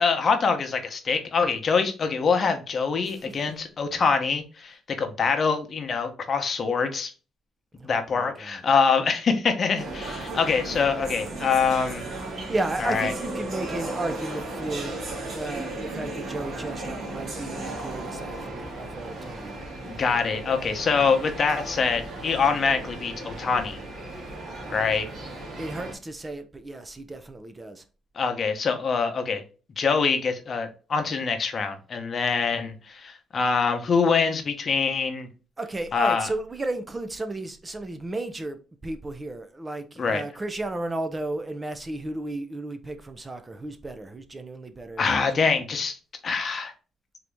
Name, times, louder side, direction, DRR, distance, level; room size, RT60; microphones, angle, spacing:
voice 1, 0.0-7.1 7.8-12.1 12.8-13.1 19.9-23.8 24.7-25.1 28.2-29.4 29.8-35.3 35.9-36.3 40.0-40.2 45.0-46.0 46.2-46.7, left 5 dB, 45° left, 0.9 m, -24 dB
voice 2, 7.8-8.6 12.5-15.0 15.3-19.6 24.6-24.9 25.6-27.8 35.6-38.6 38.8-45.5, right 2 dB, 25° right, 0.5 m, -34 dB
sound 1, 9.8-25.9, right 2 dB, 60° right, 1.7 m, -35 dB
3.9 x 2.9 x 3.4 m
cardioid pair, 90°, 0 cm